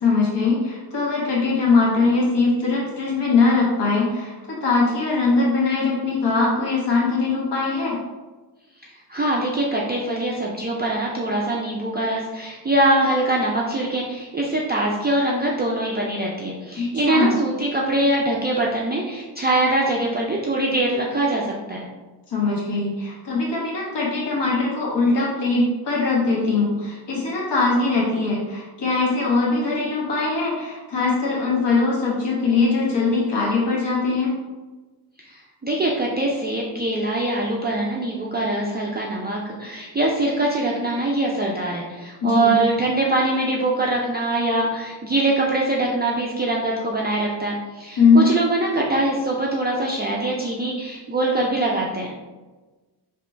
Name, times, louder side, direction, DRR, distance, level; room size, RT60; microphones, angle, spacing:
voice 1, 0.0-8.0 16.8-17.3 22.3-34.3 42.2-42.6 48.0-48.3, left 3 dB, 75° left, -4 dB, 1.1 m, -21 dB
voice 2, 8.8-21.8 35.2-52.1, right 2 dB, 25° right, -3 dB, 0.4 m, -23 dB
5.2 x 3.0 x 3.2 m, 1.3 s
wide cardioid pair, 180°, 41 cm